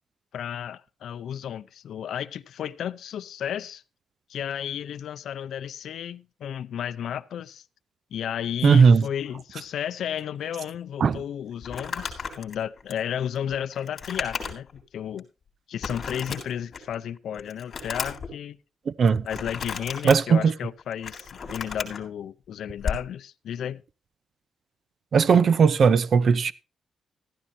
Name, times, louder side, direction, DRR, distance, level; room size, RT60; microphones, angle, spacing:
voice 1, 0.3-3.8 4.3-7.6 8.1-15.3 15.7-18.6 19.2-23.8, left 9 dB, 70° left, 0.5 m, -33 dB
voice 2, 8.6-9.0 11.0-11.2 18.9-19.2 20.0-20.5 25.1-26.5, right 5 dB, 50° right, 0.6 m, -18 dB
Crumpling crinkling, 11.6-14.8 15.2-15.3 15.8-16.9 17.3-18.3 19.3-20.2 20.8-22.0 22.8-23.1, left 5 dB, 40° left, 3.7 m, -34 dB
14.0 x 13.5 x 2.7 m
cardioid pair, 140°, 0 cm